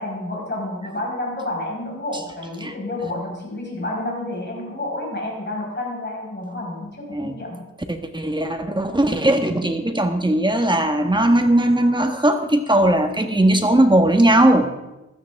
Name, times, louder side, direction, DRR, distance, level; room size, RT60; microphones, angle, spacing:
voice 1, 0.0-7.6, left 1 dB, 35° left, -3 dB, 5.6 m, -30 dB
voice 2, 7.9-14.7, right 1 dB, 15° right, 5 dB, 1.5 m, -18 dB
15.5 x 12.5 x 3.6 m, 0.99 s
wide cardioid pair, 85°, 29 cm